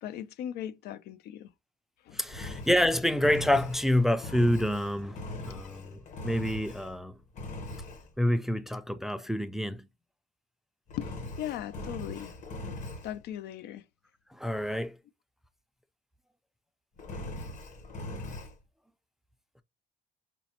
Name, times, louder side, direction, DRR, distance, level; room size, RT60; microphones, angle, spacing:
voice 1, 0.0-1.5 2.1-2.2 5.5-5.6 10.9-12.3 13.0-13.8, left 11 dB, 75° left, 0.4 m, -38 dB
voice 2, 2.1-7.2 8.2-9.9 14.3-15.0, left 1 dB, ahead, 0.3 m, -27 dB
Engine, 2.3-7.0 7.3-8.1 10.9-13.2 17.0-18.5, left 2 dB, 50° left, 1.0 m, -41 dB
5.1 x 2.1 x 2.8 m
cardioid pair, 110°, 17 cm